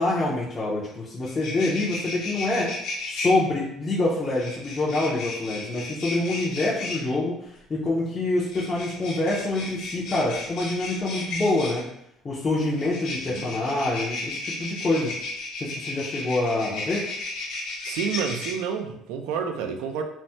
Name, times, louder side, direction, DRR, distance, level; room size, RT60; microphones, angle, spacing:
voice 1, 0.0-2.8 3.1-7.4 7.7-11.8 12.2-15.1 15.6-17.0, left 2 dB, 20° left, -7 dB, 0.4 m, -26 dB
sound 1, 0.9-1.0 1.2-3.3 4.4-7.0 8.4-11.8 12.7-18.5, left 2 dB, 65° left, 0.8 m, -34 dB
voice 2, 17.8-20.0, right 7 dB, 85° right, 6 dB, 0.3 m, -29 dB
3.2 x 2.0 x 2.7 m, 0.76 s
cardioid pair, 165°, 0 cm